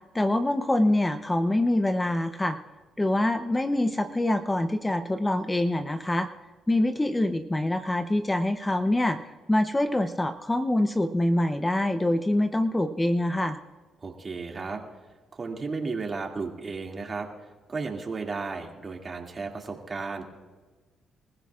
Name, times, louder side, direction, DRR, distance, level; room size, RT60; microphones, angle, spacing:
voice 1, 0.1-2.6 3.0-6.3 6.7-13.6, left 1 dB, 15° left, 8 dB, 0.7 m, -25 dB
voice 2, 14.0-14.8 15.3-17.3 17.7-20.2, right 4 dB, 35° right, 1 dB, 2.4 m, -34 dB
27.0 x 15.0 x 2.5 m, 1.3 s
cardioid pair, 90°, 0 cm